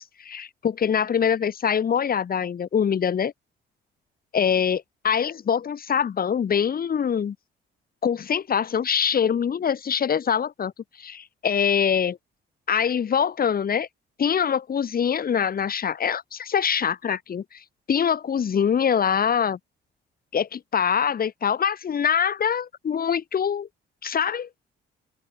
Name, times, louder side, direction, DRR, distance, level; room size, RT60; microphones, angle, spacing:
voice 1, 0.0-3.3 4.3-7.4 8.0-10.7 11.0-12.2 12.7-13.9 14.2-17.6 17.9-19.6 20.3-23.7 24.0-24.5, left 7 dB, 50° left, 2.2 m, -24 dB
open air
cardioid pair, 90°, 20 cm